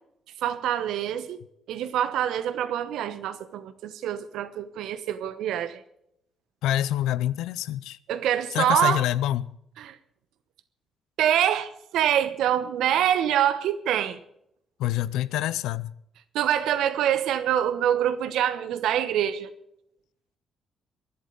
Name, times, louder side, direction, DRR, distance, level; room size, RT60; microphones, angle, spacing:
voice 1, 0.4-1.4 1.7-5.8 8.1-9.0 9.8-10.0 11.2-14.2 16.3-19.5, right 10 dB, 70° right, 1.1 m, -25 dB
voice 2, 6.6-8.0 8.5-9.5 14.8-15.9, left 13 dB, 75° left, 0.6 m, -26 dB
22.5 x 11.5 x 4.0 m
hypercardioid pair, 50°, 0 cm